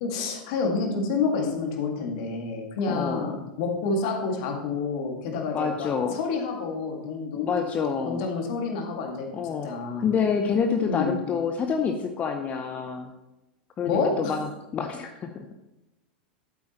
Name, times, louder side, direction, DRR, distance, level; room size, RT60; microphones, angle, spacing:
voice 1, 0.0-7.7 8.0-9.3 9.6-10.1 10.9-11.1 13.9-14.3, left 4 dB, 55° left, 2 dB, 2.0 m, -28 dB
voice 2, 2.9-3.4 5.5-6.2 7.4-8.2 9.3-9.7 10.0-13.1 13.8-15.4, left 6 dB, 30° left, 5 dB, 0.7 m, -27 dB
12.0 x 8.6 x 3.0 m, 1.0 s
figure-of-eight pair, 85°, 5 cm